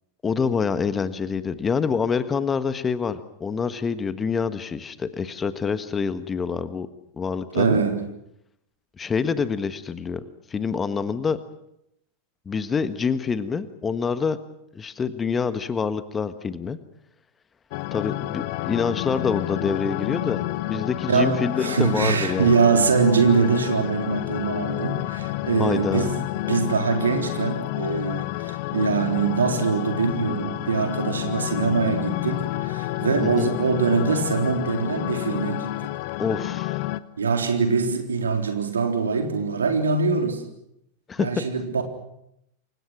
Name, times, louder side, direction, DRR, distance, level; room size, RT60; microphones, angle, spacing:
voice 1, 0.2-6.9 7.2-7.8 9.0-10.2 10.5-11.4 12.4-14.4 14.7-16.8 17.9-22.5 25.6-26.1 33.2-33.5 36.2-36.8 41.1-41.3, left 5 dB, 20° left, 13 dB, 1.4 m, -26 dB
voice 2, 7.5-8.0 21.1-26.1 26.5-35.9 37.2-40.4 41.2-41.8, right 5 dB, 70° right, 5 dB, 3.8 m, -23 dB
sound 1, 17.7-37.0, left 17 dB, 45° left, 1.1 m, -29 dB
29.0 x 24.5 x 6.1 m, 0.80 s
figure-of-eight pair, 90°, 0 cm